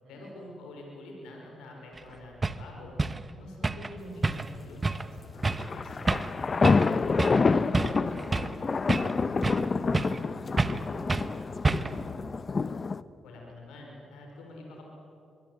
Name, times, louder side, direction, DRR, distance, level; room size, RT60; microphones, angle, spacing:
voice 1, 0.1-3.0 3.4-6.8 13.2-14.9, left 2 dB, 80° left, 0 dB, 5.5 m, -46 dB
sound 1, 2.0-2.1 2.4-2.6 3.0-3.2 3.6-3.9 4.2-4.6 4.8-5.1 5.4-5.7 6.1-6.3 6.6-6.9 7.2-7.4 7.7-8.6 8.9-9.7 9.9-10.2 10.6-10.8 11.1-11.3 11.6-12.0, right 3 dB, 30° right, 1.2 m, -28 dB
sound 2, 5.4-13.0, left 4 dB, 45° left, 0.9 m, -27 dB
voice 2, 7.6-12.0, right 2 dB, 75° right, -6 dB, 7.4 m, -52 dB
26.0 x 22.0 x 8.2 m, 2.6 s
hypercardioid pair, 50°, 0 cm